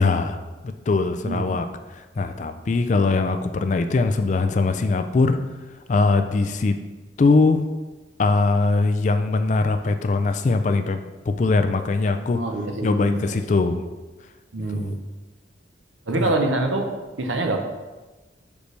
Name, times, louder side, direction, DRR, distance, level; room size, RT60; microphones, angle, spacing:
voice 1, 0.0-1.7 1.9-5.4 5.9-6.8 7.2-7.7 8.2-11.0 11.3-12.4 12.8-13.8 14.7-15.0 16.1-16.3, left 3 dB, 40° left, 8 dB, 0.3 m, -21 dB
voice 2, 12.3-13.4 14.5-15.0 16.1-16.9 17.2-17.6, right 2 dB, 85° right, 4 dB, 0.8 m, -25 dB
6.3 x 5.1 x 3.3 m, 1.2 s
head